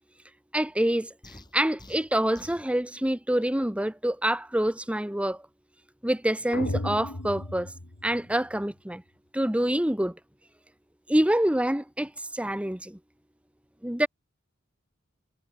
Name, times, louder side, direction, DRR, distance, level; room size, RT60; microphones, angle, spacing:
voice 1, 0.5-1.1 1.5-5.5 6.0-7.7 8.0-9.0 9.3-10.2 11.1-13.0 13.8-14.1, right 1 dB, 5° right, 1.1 m, -26 dB
sound 1, 1.2-2.7, left 1 dB, 20° left, 6.6 m, -49 dB
sound 2, 6.5-8.7, left 1 dB, 80° left, 2.1 m, -35 dB
head